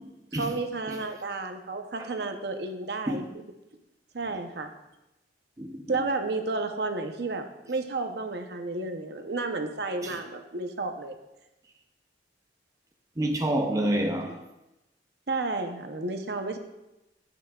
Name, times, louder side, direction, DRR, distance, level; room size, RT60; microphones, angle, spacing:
voice 1, 0.3-3.4 4.1-4.7 5.9-11.2 15.3-16.6, right 3 dB, 60° right, 0.7 m, -32 dB
voice 2, 13.2-14.4, right 1 dB, 20° right, 0.5 m, -28 dB
16.0 x 5.9 x 2.3 m
head